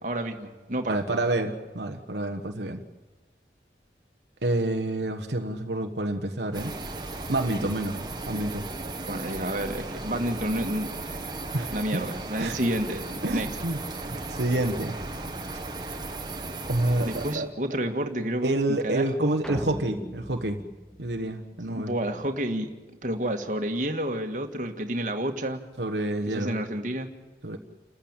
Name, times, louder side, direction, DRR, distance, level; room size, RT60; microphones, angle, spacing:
voice 1, 0.0-1.2 9.1-10.9 11.7-13.5 17.0-19.4 21.7-22.7 23.0-25.6 26.3-27.1, right 1 dB, 45° right, 4 dB, 1.9 m, -30 dB
voice 2, 0.9-2.8 4.4-6.7 7.3-8.0 8.3-8.6 11.5-12.1 12.4-12.6 13.2-13.8 14.3-15.0 16.7-17.5 18.4-20.6 21.0-21.9 25.8-26.5 27.4-27.6, right 1 dB, 75° right, 4 dB, 1.3 m, -28 dB
sound 1, 6.5-17.4, right 2 dB, 25° right, 1.6 m, -36 dB
sound 2, 19.4-21.9, equal, 5° left, 1.0 m, -39 dB
29.5 x 14.5 x 9.0 m, 1.2 s
head